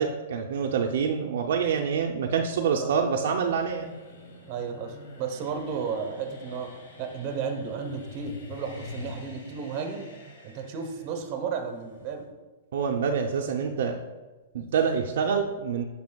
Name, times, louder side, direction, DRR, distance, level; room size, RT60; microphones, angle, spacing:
voice 1, 0.0-3.9 12.7-14.0 14.5-15.8, right 6 dB, 65° right, 2 dB, 0.5 m, -26 dB
sound 1, 1.3-12.3, left 3 dB, 65° left, 1.8 m, -46 dB
voice 2, 4.5-6.7 7.0-10.1 10.4-12.3, right 6 dB, 35° right, 5 dB, 0.9 m, -33 dB
9.4 x 5.8 x 2.2 m, 1.2 s
hypercardioid pair, 160°, 0 cm